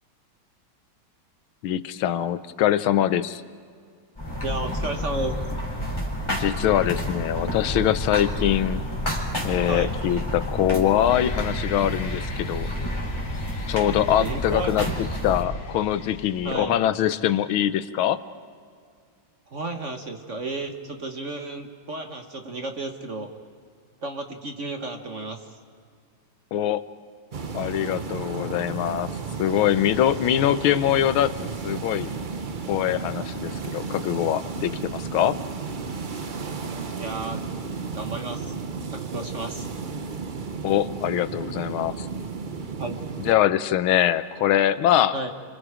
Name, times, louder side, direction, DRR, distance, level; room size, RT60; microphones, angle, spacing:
voice 1, 1.6-3.4 6.4-8.8 9.4-12.7 13.7-18.2 26.5-26.8 27.5-29.1 29.4-31.3 31.6-32.1 32.7-35.4 40.6-42.1 43.2-45.1, left 11 dB, 85° left, 13 dB, 1.6 m, -23 dB
sound 1, 4.2-15.4, equal, 15° left, 3.6 m, -29 dB
voice 2, 4.4-5.3 9.7-9.9 14.2-14.9 16.4-16.7 19.5-23.3 24.0-25.5 37.0-37.4 37.9-38.5 38.9-39.7 42.8-43.0 45.1-45.3, right 2 dB, 40° right, 4 dB, 1.5 m, -32 dB
sound 2, 11.1-16.6, left 2 dB, 55° left, 4.0 m, -39 dB
sound 3, 27.3-43.3, right 4 dB, 60° right, 0.5 m, -33 dB
30.0 x 25.5 x 5.0 m, 2.2 s
omnidirectional pair, 2.2 m